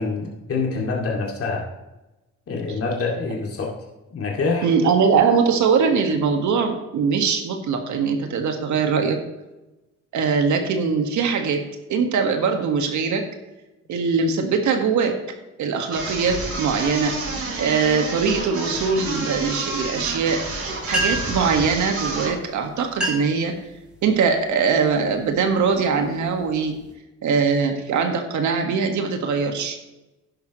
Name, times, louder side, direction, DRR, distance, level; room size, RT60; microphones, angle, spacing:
voice 1, 0.0-1.6 2.5-3.7 4.1-4.7, left 4 dB, 50° left, -1 dB, 2.4 m, -25 dB
voice 2, 4.6-9.2 10.1-11.6 11.9-13.2 13.9-15.2 15.6-17.2 17.6-20.5 20.9-23.5 24.0-26.8 27.2-29.8, right 5 dB, 75° right, 4 dB, 1.7 m, -21 dB
sound 1, 15.9-22.4, right 2 dB, 50° right, 4.1 m, -30 dB
sound 2, 20.6-20.7 20.8-21.4 22.3-22.5 22.8-23.4 23.9-24.3 24.9-25.1 25.7-26.9, right 1 dB, 5° right, 3.5 m, -28 dB
11.5 x 10.5 x 3.1 m, 1.0 s
cardioid pair, 90°, 30 cm